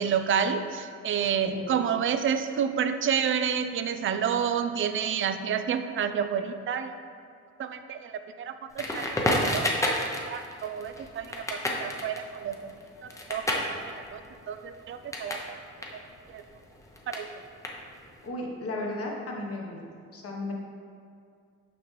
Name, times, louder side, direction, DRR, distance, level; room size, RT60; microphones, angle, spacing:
voice 1, 0.0-6.9 7.6-9.1 9.4-9.9 10.3-12.7 13.0-15.4 16.3-16.4 17.1-17.3, right 7 dB, 45° right, 9 dB, 0.4 m, -29 dB
Crackle, 8.8-15.5 15.7-18.2, left 1 dB, 10° left, 0.7 m, -31 dB
voice 2, 18.2-19.8 20.1-20.5, left 2 dB, 50° left, -1 dB, 1.2 m, -34 dB
5.8 x 5.1 x 3.2 m, 2.3 s
cardioid pair, 90°, 30 cm